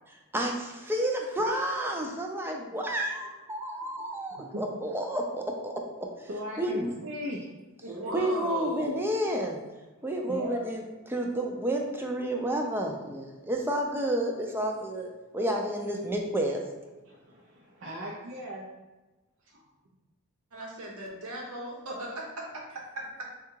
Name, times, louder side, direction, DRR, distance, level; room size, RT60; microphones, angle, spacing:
voice 1, 0.3-6.1 6.6-6.9 8.1-9.6 10.0-15.1 15.3-16.6, right 1 dB, 10° right, 1 dB, 0.4 m, -30 dB
voice 2, 6.3-7.4 7.8-8.1 10.3-10.6 17.1-17.2 17.8-18.7 19.5-19.6, equal, 55° right, -4 dB, 0.6 m, -37 dB
voice 3, 7.9-9.1 20.5-23.3, right 1 dB, 80° right, -1 dB, 1.0 m, -37 dB
3.7 x 2.4 x 4.5 m, 1.2 s
head